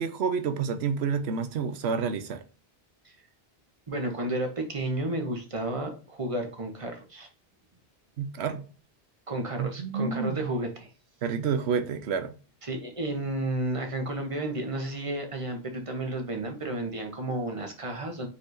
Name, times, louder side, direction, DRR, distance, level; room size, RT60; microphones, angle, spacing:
voice 1, 0.0-2.4 8.2-8.6 9.6-10.4 11.2-12.4, right 6 dB, 85° right, 1.0 m, -29 dB
voice 2, 3.9-7.3 9.3-10.9 12.6-18.3, right 1 dB, 30° right, 1.1 m, -32 dB
4.8 x 4.2 x 2.6 m
omnidirectional pair, 1.1 m